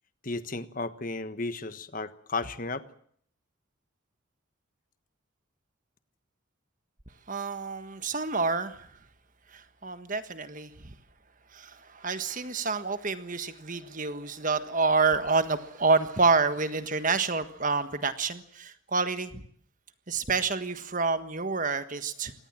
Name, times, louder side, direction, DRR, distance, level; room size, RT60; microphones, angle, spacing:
voice 1, 0.2-2.8, left 3 dB, 40° left, 12 dB, 1.3 m, -34 dB
voice 2, 7.3-8.9 9.5-10.9 11.5-19.4 20.1-22.3, right 4 dB, 40° right, 10 dB, 1.5 m, -28 dB
24.5 x 19.0 x 7.5 m, 0.62 s
head